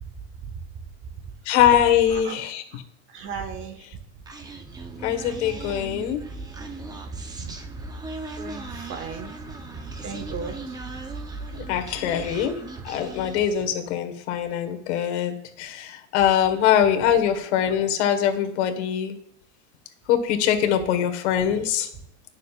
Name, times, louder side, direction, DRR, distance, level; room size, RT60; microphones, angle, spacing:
voice 1, 1.4-2.8 5.0-6.2 11.5-12.6 12.8-19.2 20.1-21.9, left 9 dB, 80° left, 6 dB, 1.6 m, -23 dB
voice 2, 3.1-4.0 7.1-7.8 8.4-10.8 11.8-11.9 12.8-12.9, right 6 dB, 35° right, 5 dB, 1.4 m, -37 dB
Human voice, 4.3-13.7, right 2 dB, 10° right, 0.8 m, -38 dB
20.0 x 6.7 x 2.5 m, 0.74 s
supercardioid pair, 150°, 34 cm